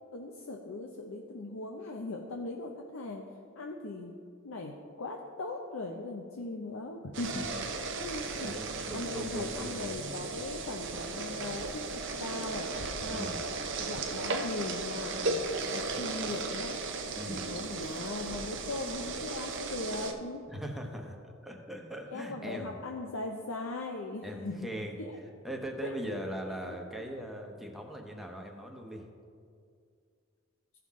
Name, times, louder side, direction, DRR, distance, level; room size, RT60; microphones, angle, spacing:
voice 1, 0.1-3.2 3.6-4.2 4.4-7.5 8.0-8.5 8.9-12.7 13.0-13.3 13.8-15.4 15.7-16.8 17.3-20.4 22.1-24.7 25.0-25.2 25.8-25.9, left 2 dB, 75° left, 1 dB, 0.6 m, -39 dB
sound 1, 7.1-20.1, right 3 dB, 60° right, 0.7 m, -36 dB
voice 2, 7.3-7.6 8.3-10.0 13.1-13.4 17.1-17.5 20.5-22.8 24.2-25.0 25.4-29.0, equal, ahead, 1 dB, 0.9 m, -40 dB
14.5 x 5.7 x 3.7 m, 2.3 s
head